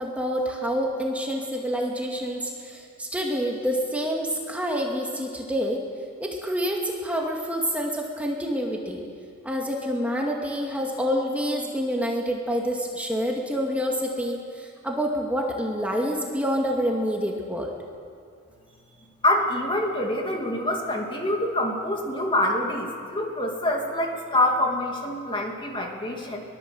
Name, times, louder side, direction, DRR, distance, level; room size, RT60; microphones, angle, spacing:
voice 1, 0.0-5.8 6.2-9.0 9.4-17.7, equal, 5° right, -1 dB, 2.1 m, -27 dB
voice 2, 19.2-26.4, left 1 dB, 20° left, 1 dB, 2.5 m, -26 dB
23.0 x 21.0 x 7.8 m, 2.4 s
head